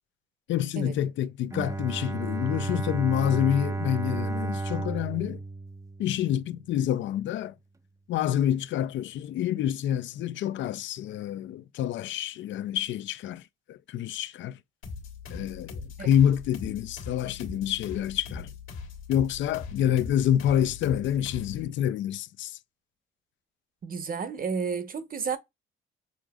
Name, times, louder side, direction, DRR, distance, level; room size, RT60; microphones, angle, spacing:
voice 1, 0.5-5.4 6.0-7.5 8.1-13.4 13.7-14.6 15.3-18.5 19.1-22.6, left 10 dB, 70° left, 0.4 m, -27 dB
Bowed string instrument, 1.5-6.4, right 3 dB, 15° right, 0.5 m, -32 dB
sound 1, 14.8-21.7, left 5 dB, 90° left, 1.5 m, -41 dB
voice 2, 23.8-25.4, right 5 dB, 45° right, 1.0 m, -31 dB
6.4 x 2.5 x 2.3 m
cardioid pair, 90°, 20 cm